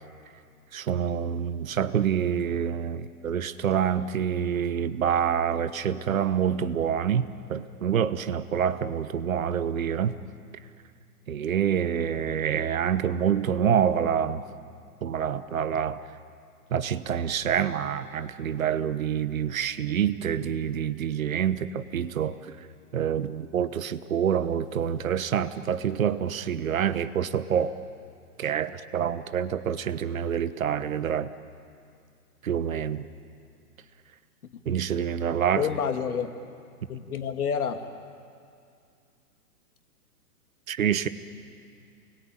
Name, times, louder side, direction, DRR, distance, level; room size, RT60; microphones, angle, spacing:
voice 1, 0.7-10.2 11.3-14.4 15.0-16.0 16.7-22.3 22.9-27.7 28.4-31.3 32.4-33.0 34.7-35.7 40.7-41.1, right 8 dB, 60° right, 13 dB, 1.2 m, -27 dB
voice 2, 35.6-36.3 36.9-37.8, left 7 dB, 70° left, 6 dB, 2.3 m, -28 dB
29.5 x 21.5 x 9.1 m, 2.3 s
hypercardioid pair, 175°, 47 cm